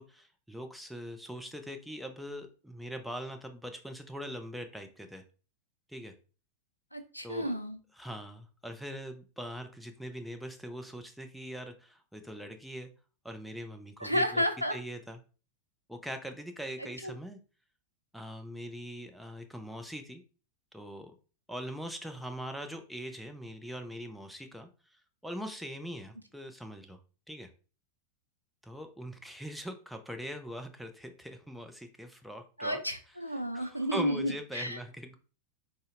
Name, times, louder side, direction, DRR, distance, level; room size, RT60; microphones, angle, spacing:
voice 1, 0.0-5.2 5.9-6.1 7.2-7.6 7.9-12.9 13.2-14.4 14.7-15.2 15.9-17.4 18.1-20.2 20.7-21.1 21.5-27.0 27.3-27.5 28.6-32.8 33.5-35.1, equal, ahead, 6 dB, 0.4 m, -42 dB
voice 2, 6.9-7.8 14.0-14.8 16.8-17.1 32.6-34.8, equal, 90° left, 7 dB, 0.3 m, -32 dB
3.7 x 2.0 x 2.5 m, 0.37 s
figure-of-eight pair, 90°, 0 cm